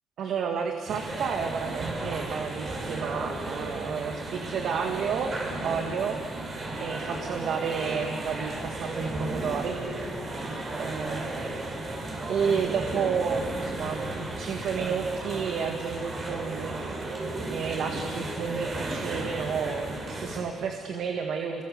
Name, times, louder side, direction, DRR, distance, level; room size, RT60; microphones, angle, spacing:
voice 1, 0.2-6.2 6.8-9.8 10.8-11.3 12.3-16.8 17.5-21.6, right 6 dB, 70° right, 3 dB, 1.9 m, -31 dB
sound 1, 0.9-20.4, right 2 dB, 45° right, 5.8 m, -34 dB
29.0 x 22.5 x 6.8 m, 2.2 s
cardioid pair, 100°, 0 cm